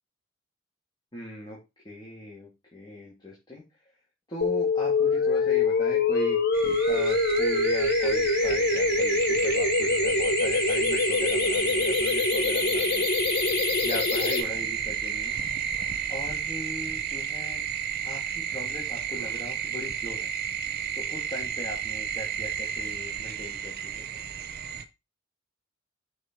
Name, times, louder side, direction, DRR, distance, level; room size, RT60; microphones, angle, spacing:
voice 1, 1.1-1.6 1.8-3.6 4.3-13.1 13.8-15.3 16.1-17.6 18.0-20.3 20.9-24.1, equal, 20° left, -5 dB, 2.3 m, -39 dB
sound 1, 4.4-14.4, left 3 dB, 55° left, 1.2 m, -24 dB
sound 2, 6.5-24.8, right 8 dB, 50° right, 0.7 m, -32 dB
6.7 x 4.5 x 4.5 m, 0.24 s
head